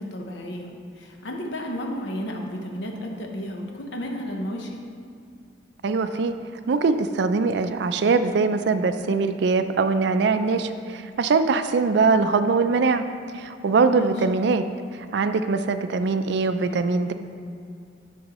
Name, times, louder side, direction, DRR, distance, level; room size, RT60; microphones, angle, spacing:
voice 1, 0.0-4.8 13.9-14.3, equal, 70° left, 1 dB, 0.9 m, -32 dB
voice 2, 5.8-6.3 6.7-13.0 13.3-14.6 15.1-17.1, right 4 dB, 60° right, 9 dB, 0.4 m, -22 dB
9.3 x 6.3 x 2.9 m, 2.4 s
head